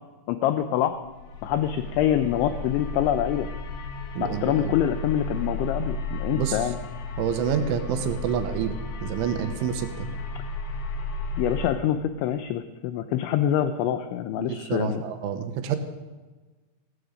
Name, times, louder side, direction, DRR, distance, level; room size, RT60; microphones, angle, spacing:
voice 1, 0.3-1.0 1.4-3.5 4.2-6.8 11.4-15.0, left 10 dB, 85° left, 10 dB, 2.6 m, -25 dB
sound 1, 1.0-11.7, left 3 dB, 65° left, 2.7 m, -34 dB
voice 2, 4.2-4.7 6.3-6.7 7.2-10.1 14.4-15.8, right 9 dB, 75° right, 7 dB, 3.2 m, -28 dB
15.5 x 13.5 x 5.1 m, 1.3 s
omnidirectional pair, 6.0 m